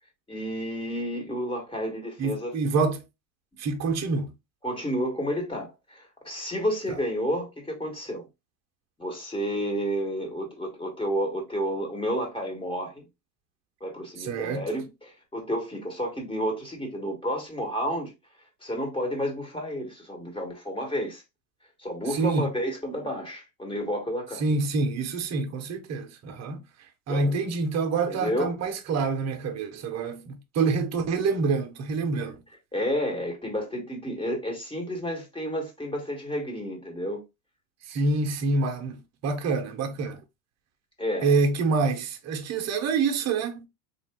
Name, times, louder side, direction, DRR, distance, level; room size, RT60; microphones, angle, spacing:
voice 1, 0.3-2.5 4.6-8.3 9.0-13.0 13.8-18.1 18.6-21.2 21.8-24.5 27.1-27.5 28.1-28.6 32.1-32.3 32.7-37.2 41.0-41.4, equal, 10° left, 1.5 m, -31 dB
voice 2, 2.2-3.0 3.6-4.3 14.2-14.7 22.1-22.5 24.4-26.6 27.1-32.3 37.9-39.0 39.2-40.2 41.2-43.7, right 4 dB, 40° right, 0.9 m, -26 dB
3.6 x 2.5 x 3.5 m
supercardioid pair, 115°, 42 cm